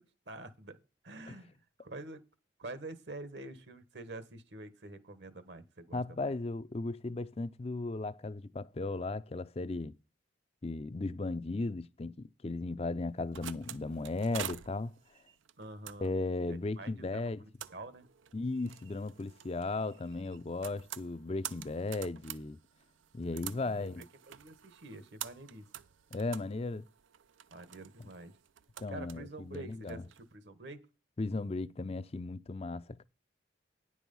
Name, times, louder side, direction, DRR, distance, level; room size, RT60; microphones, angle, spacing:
voice 1, 0.3-0.8 1.0-2.2 2.6-6.3 15.6-16.2 16.5-18.1 23.3-25.6 27.5-28.3 28.9-30.8, right 2 dB, 60° right, 1.4 m, -47 dB
voice 2, 5.9-10.0 10.6-14.9 16.0-17.4 18.3-22.6 23.1-24.0 26.1-26.8 28.8-30.0 31.2-33.0, left 3 dB, 30° left, 0.4 m, -36 dB
sound 1, 13.0-30.2, right 10 dB, 80° right, 0.5 m, -48 dB
10.0 x 6.3 x 5.3 m
head